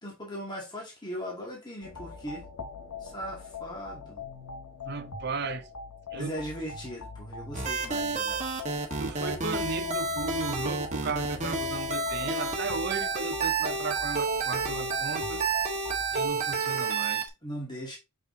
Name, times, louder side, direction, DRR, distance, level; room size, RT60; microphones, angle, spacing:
voice 1, 0.0-2.5 3.0-4.2 6.1-8.4 17.4-18.0, equal, 20° left, 2.3 m, -38 dB
sound 1, 1.8-16.3, left 4 dB, 90° left, 1.5 m, -42 dB
voice 2, 4.8-5.7 6.1-6.3 9.0-15.4 16.1-17.3, right 4 dB, 45° right, 0.7 m, -35 dB
sound 2, 7.5-17.3, right 4 dB, 30° right, 1.4 m, -30 dB
6.4 x 5.6 x 2.7 m
head